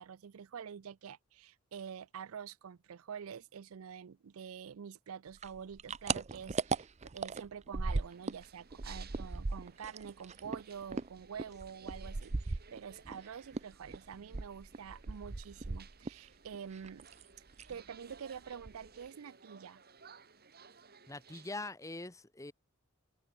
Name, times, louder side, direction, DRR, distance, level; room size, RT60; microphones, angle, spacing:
voice 1, 0.0-17.1 17.7-19.8, right 7 dB, 85° right, 0.5 m, -47 dB
sound 1, 5.4-8.5 8.7-13.2 13.5-16.3 16.5-17.2 17.5-17.8 18.1-18.2 18.5-19.1, right 3 dB, 35° right, 0.6 m, -38 dB
sound 2, 7.9-21.7, right 6 dB, 50° right, 6.4 m, -59 dB
voice 2, 21.1-22.5, left 2 dB, 15° left, 1.0 m, -43 dB
head